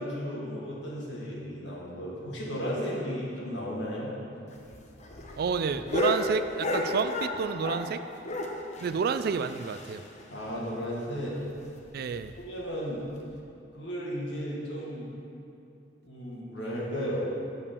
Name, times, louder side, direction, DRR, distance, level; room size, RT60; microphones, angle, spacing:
voice 1, 0.0-4.1 10.3-11.4 12.4-13.0 13.7-15.1 16.0-17.3, equal, 70° left, -5 dB, 2.0 m, -34 dB
sound 1, 4.5-7.9 8.2-10.2 10.5-10.6 10.9-11.0 11.4-11.5 12.1-12.4 13.2-13.3, left 2 dB, 40° left, 0.8 m, -33 dB
voice 2, 5.4-8.0 8.8-10.0 11.9-12.3, right 5 dB, 55° right, 11 dB, 0.3 m, -29 dB
6.9 x 5.6 x 6.8 m, 2.8 s
head